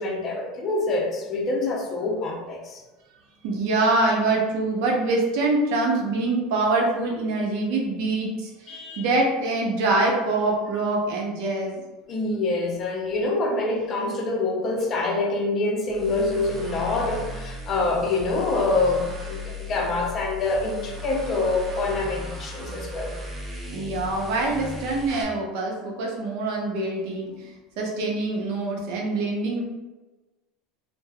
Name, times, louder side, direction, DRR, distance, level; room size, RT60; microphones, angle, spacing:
voice 1, 0.0-2.8 8.7-9.0 12.1-23.1, left 2 dB, 40° left, 0 dB, 0.6 m, -26 dB
voice 2, 3.4-11.8 23.7-29.6, right 2 dB, 70° right, 0 dB, 0.7 m, -25 dB
sound 1, 15.9-25.2, left 1 dB, 20° right, 0.7 m, -36 dB
3.3 x 2.1 x 2.2 m, 1.1 s
supercardioid pair, 110°, 0 cm